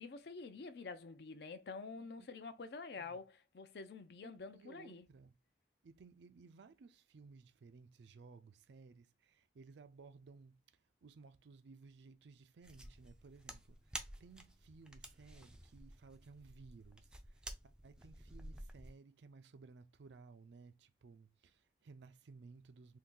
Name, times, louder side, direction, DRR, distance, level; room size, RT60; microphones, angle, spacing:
voice 1, 0.0-5.1, left 4 dB, 65° left, 0.5 m, -48 dB
voice 2, 4.2-5.3 5.8-10.6 11.0-23.0, right 4 dB, 75° right, 0.4 m, -59 dB
sound 1, 12.6-18.9, right 1 dB, 5° right, 0.3 m, -52 dB
2.7 x 2.5 x 3.7 m
head